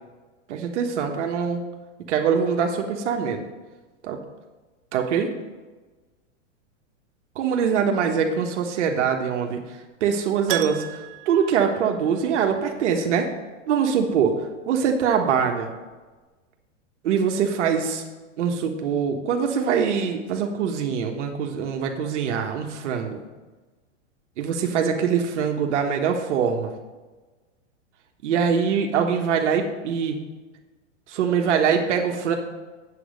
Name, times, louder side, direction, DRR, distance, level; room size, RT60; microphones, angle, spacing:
voice 1, 0.5-1.6 2.1-3.4 4.0-4.2 4.9-5.3 7.3-13.3 13.7-15.7 17.0-18.0 18.4-23.2 24.4-26.7 28.2-30.2 31.1-32.3, right 7 dB, 70° right, 3 dB, 1.2 m, -23 dB
Keyboard (musical), 10.5-12.5 12.8-12.9 15.6-15.7 15.9-16.0, right 14 dB, 50° right, 0.4 m, -33 dB
8.4 x 7.7 x 5.1 m, 1.3 s
supercardioid pair, 160°, 37 cm